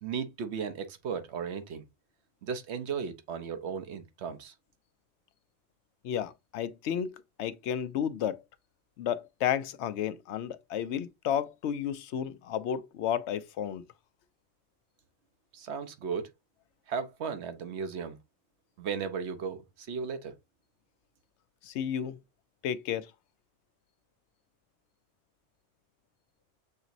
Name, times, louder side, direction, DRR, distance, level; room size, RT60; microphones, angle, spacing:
voice 1, 0.0-1.8 2.4-4.5 15.5-16.3 16.9-18.2 18.8-20.3, right 6 dB, 85° right, 1.0 m, -35 dB
voice 2, 6.0-8.4 9.0-13.8 21.6-22.2 22.6-23.1, left 9 dB, 85° left, 0.9 m, -32 dB
6.6 x 3.0 x 2.6 m
omnidirectional pair, 1.1 m